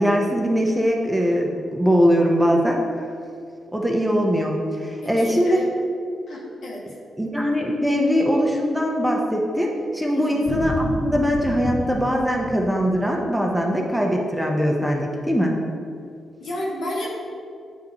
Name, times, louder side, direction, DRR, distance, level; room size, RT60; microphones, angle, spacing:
voice 1, 0.0-2.8 3.7-5.7 7.2-15.6, equal, 5° right, 0 dB, 0.9 m, -21 dB
voice 2, 5.0-5.7 6.3-6.8 10.1-10.5 16.4-17.2, left 1 dB, 65° left, -4 dB, 1.5 m, -31 dB
sound 1, 10.5-13.4 13.6-13.7, left 2 dB, 45° left, 0.5 m, -31 dB
9.2 x 3.7 x 3.0 m, 2.3 s
hypercardioid pair, 40°, 0 cm